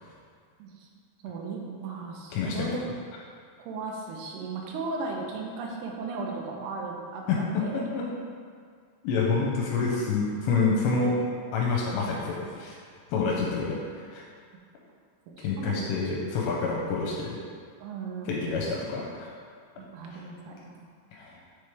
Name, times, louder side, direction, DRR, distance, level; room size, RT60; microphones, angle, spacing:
voice 1, 1.2-2.8 3.6-7.9 15.3-16.0 17.8-18.8 19.8-20.8, right 3 dB, 80° right, 0 dB, 2.4 m, -36 dB
voice 2, 2.3-2.7 7.3-7.4 7.7-8.0 9.0-11.2 11.5-12.8 13.1-14.2 15.4-17.4 18.3-19.3 20.0-20.2 21.1-21.4, left 4 dB, 85° left, -3 dB, 2.9 m, -28 dB
6.9 x 3.2 x 4.8 m, 2.1 s
omnidirectional pair, 5.2 m